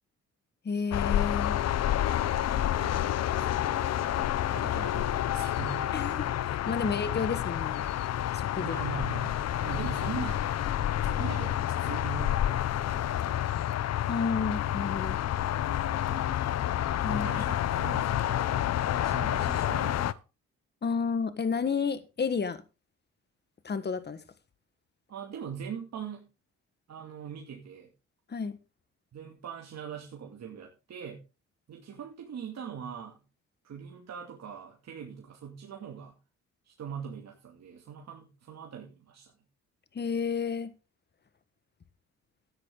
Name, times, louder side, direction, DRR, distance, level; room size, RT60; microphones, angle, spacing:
voice 1, 0.6-1.6 5.9-7.8 8.3-8.8 14.1-15.2 17.0-17.3 20.8-22.6 23.6-24.2 28.3-28.6 39.9-40.7, left 5 dB, 35° left, 1.5 m, -31 dB
sound 1, 0.9-20.1, left 12 dB, 60° left, 0.7 m, -29 dB
voice 2, 2.1-6.0 6.8-7.0 8.6-10.4 11.0-13.5 16.0-16.4 17.0-20.2 25.1-26.3 26.9-27.9 29.1-31.2 31.7-33.2 33.6-36.2 36.6-39.3, right 7 dB, 60° right, 2.4 m, -42 dB
13.0 x 9.7 x 3.8 m
cardioid pair, 90°, 30 cm